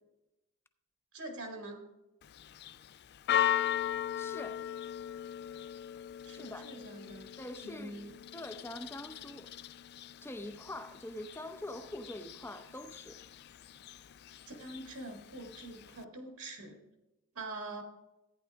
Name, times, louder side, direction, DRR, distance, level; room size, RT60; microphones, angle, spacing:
voice 1, 1.1-1.8 6.2-7.3 7.6-8.1 14.5-16.8 17.4-17.8, right 2 dB, 75° right, 1.9 m, -44 dB
Church bell, 2.2-16.0, left 10 dB, 50° left, 0.3 m, -39 dB
voice 2, 4.1-4.7 6.3-6.7 7.4-7.9 8.3-9.5 10.2-13.2, left 1 dB, 10° left, 0.6 m, -44 dB
14.5 x 9.7 x 3.5 m
head